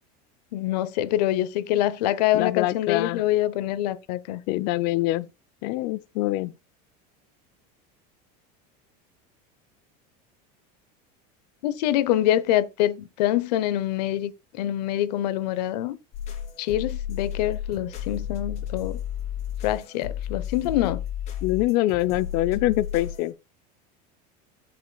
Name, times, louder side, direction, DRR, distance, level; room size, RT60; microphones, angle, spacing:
voice 1, 0.5-4.4 11.6-16.0 16.6-19.0 19.6-21.0, left 13 dB, 90° left, 0.9 m, -25 dB
voice 2, 2.3-3.2 4.5-5.3 5.6-6.5 21.4-23.3, left 17 dB, 50° left, 0.5 m, -24 dB
sound 1, 16.1-23.3, left 9 dB, 35° left, 3.9 m, -33 dB
16.5 x 5.7 x 2.3 m
cardioid pair, 160°, 21 cm